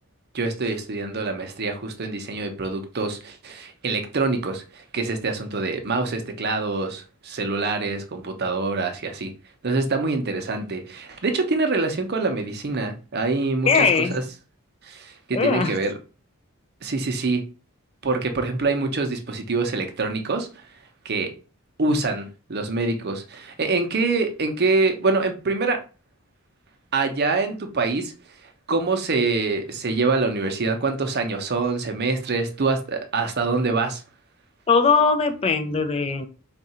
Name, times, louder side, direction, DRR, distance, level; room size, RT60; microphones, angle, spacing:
voice 1, 0.3-9.3 9.6-14.2 14.8-15.9 16.8-17.5 18.0-20.5 21.0-21.3 21.8-25.8 26.9-28.1 28.7-34.0, right 3 dB, 50° right, 0.7 m, -25 dB
voice 2, 13.7-14.2 15.3-15.8 34.7-36.3, left 5 dB, 30° left, 0.4 m, -20 dB
3.6 x 2.4 x 4.2 m
head